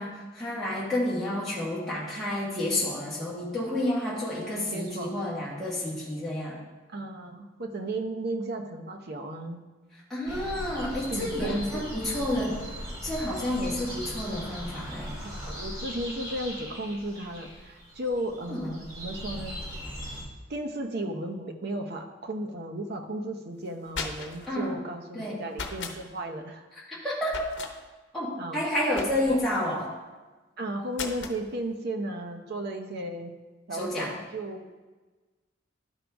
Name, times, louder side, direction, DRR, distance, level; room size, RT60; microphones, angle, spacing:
voice 1, 0.0-6.6 10.1-12.6 13.0-15.1 18.5-18.7 24.5-24.7 25.1-25.4 26.9-27.4 28.1-29.8 33.7-34.1, left 1 dB, ahead, -8 dB, 1.5 m, -30 dB
voice 2, 4.4-5.2 6.9-9.6 11.1-11.9 12.1-12.6 15.2-19.6 20.5-26.7 28.4-28.6 29.3-29.5 30.6-33.4 33.7-34.6, right 1 dB, 60° right, 4 dB, 0.8 m, -35 dB
sound 1, 10.3-20.2, equal, 25° right, 2.7 m, -39 dB
sound 2, 23.7-24.5 25.5-26.0 27.3-27.7 29.0-29.5 30.9-31.4, left 4 dB, 70° left, 0.9 m, -36 dB
12.0 x 5.1 x 3.5 m, 1.3 s
head